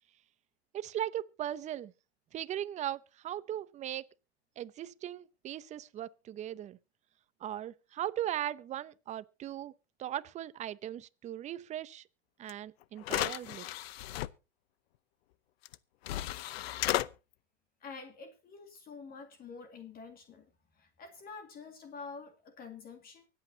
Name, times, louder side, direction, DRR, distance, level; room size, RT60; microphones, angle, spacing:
voice 1, 0.7-1.9 2.3-4.1 4.6-6.8 7.4-9.7 10.0-12.0 12.4-13.7, right 11 dB, 25° right, 0.6 m, -38 dB
sound 1, 12.5-12.6 13.0-14.3 15.6-15.7 16.0-17.1, left 15 dB, 75° left, 0.7 m, -34 dB
voice 2, 17.8-20.5 20.8-23.3, left 4 dB, 30° left, 2.1 m, -47 dB
24.5 x 8.5 x 2.8 m
supercardioid pair, 125°, 31 cm